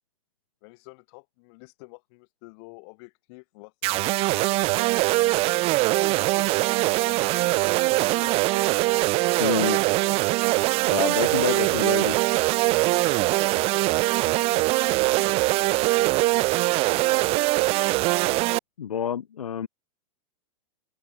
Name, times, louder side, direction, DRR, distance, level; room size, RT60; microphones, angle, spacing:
voice 1, 0.6-5.9 6.8-8.9 11.0-11.5 13.5-13.9 14.5-17.5, left 30 dB, 50° left, 1.6 m, -48 dB
sound 1, 3.8-18.6, right 21 dB, 35° right, 0.4 m, -22 dB
voice 2, 9.4-9.8 10.9-12.2 18.8-19.7, left 8 dB, 90° left, 1.1 m, -27 dB
open air
hypercardioid pair, 115°, 18 cm